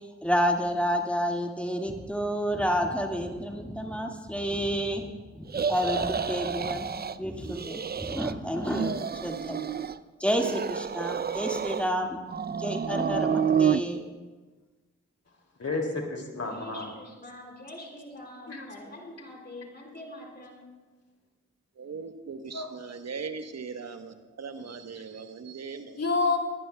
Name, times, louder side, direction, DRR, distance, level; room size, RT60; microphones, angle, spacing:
voice 1, 0.2-6.9 7.2-9.6 10.2-12.2 12.6-14.0, equal, 5° left, 1 dB, 1.9 m, -30 dB
sound 1, 5.5-7.2 7.5-8.3 8.6-10.0 10.3-11.9 12.3-13.8, right 7 dB, 35° right, 0.5 m, -29 dB
voice 2, 15.6-16.9 18.5-18.7 22.5-22.7 26.0-26.4, left 3 dB, 55° left, 1 dB, 2.6 m, -29 dB
voice 3, 16.5-20.7, left 1 dB, 35° left, 0 dB, 4.4 m, -44 dB
voice 4, 21.8-26.0, right 5 dB, 60° right, 7 dB, 1.1 m, -39 dB
21.5 x 11.0 x 2.3 m, 1.3 s
cardioid pair, 40°, 30 cm